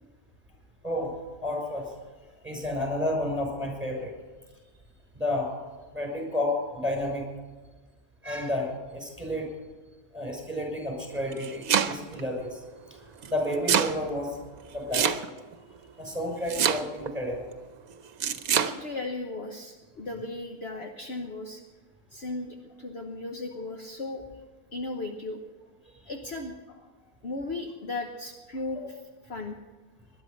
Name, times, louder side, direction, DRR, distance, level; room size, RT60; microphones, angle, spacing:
voice 1, 1.4-1.9 2.4-4.1 5.1-5.5 5.9-7.2 8.2-9.5 10.1-12.6 12.9-13.0 13.3-14.4 14.7-15.1 16.0-17.5, left 1 dB, 5° right, 2 dB, 6.1 m, -31 dB
Domestic sounds home sounds, 11.2-12.2 13.2-14.0 14.9-15.5 16.5-17.1 18.2-18.7, right 8 dB, 70° right, 1.3 m, -25 dB
voice 2, 18.6-21.6 22.1-24.2 24.7-25.4 26.1-26.5 27.2-29.6, left 2 dB, 45° left, 3 dB, 1.3 m, -36 dB
21.0 x 11.0 x 5.3 m, 1.3 s
omnidirectional pair, 1.6 m